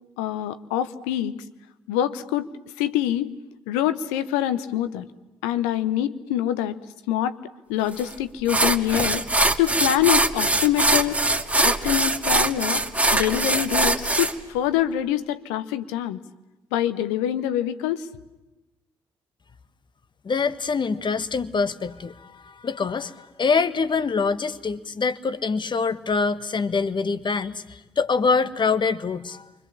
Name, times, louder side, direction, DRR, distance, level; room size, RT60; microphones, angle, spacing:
voice 1, 0.2-1.3 1.9-2.5 2.8-3.3 3.7-5.0 5.4-6.8 7.1-7.4 7.7-9.2 9.6-11.2 11.6-12.8 13.1-16.2 16.7-18.1, left 12 dB, 75° left, 12 dB, 1.1 m, -25 dB
sound 1, 8.0-8.1 8.5-14.3, right 2 dB, 10° right, 2.3 m, -22 dB
voice 2, 20.2-29.5, left 4 dB, 40° left, 13 dB, 1.4 m, -25 dB
30.0 x 25.0 x 7.3 m, 1.0 s
figure-of-eight pair, 40°, 13 cm